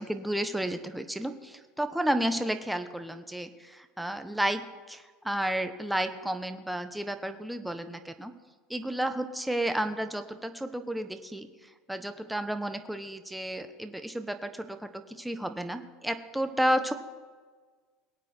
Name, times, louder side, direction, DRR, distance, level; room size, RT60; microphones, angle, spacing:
voice 1, 0.0-8.3 8.7-11.5 11.9-16.9, right 1 dB, 5° right, 8 dB, 1.1 m, -32 dB
22.5 x 8.7 x 4.4 m, 1.5 s
supercardioid pair, 135°, 0 cm